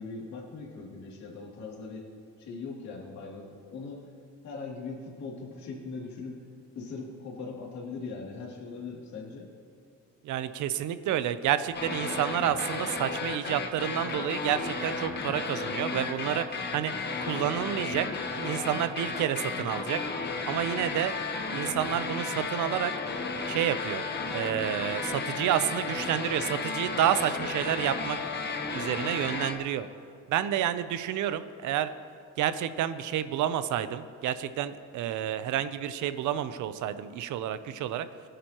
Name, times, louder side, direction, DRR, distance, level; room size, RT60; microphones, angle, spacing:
voice 1, 0.0-2.1 2.4-4.0 4.4-6.4 6.7-9.5, left 4 dB, 70° left, -3 dB, 2.8 m, -40 dB
voice 2, 10.2-16.4 16.7-16.9 17.2-18.1 18.4-20.0 20.5-21.1 21.5-22.9 23.5-24.0 24.3-28.2 28.7-29.9 30.3-31.9 32.4-38.1, right 11 dB, 80° right, 13 dB, 0.7 m, -29 dB
sound 1, 11.7-29.5, left 4 dB, 35° left, 1.1 m, -33 dB
21.5 x 10.0 x 3.0 m, 2.6 s
cardioid pair, 145°, 29 cm